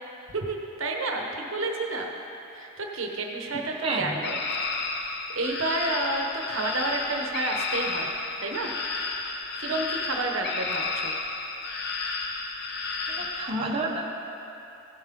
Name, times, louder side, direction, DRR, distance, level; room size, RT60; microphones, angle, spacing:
voice 1, 0.3-2.1 2.5-4.4 5.0-8.7 9.5-11.1, right 2 dB, 65° right, 2 dB, 0.9 m, -30 dB
voice 2, 3.8-4.1 13.1-14.1, right 2 dB, 25° right, -2 dB, 0.9 m, -30 dB
sound 1, 4.2-13.5, left 3 dB, 50° left, 0.7 m, -32 dB
16.0 x 7.2 x 3.7 m, 2.8 s
head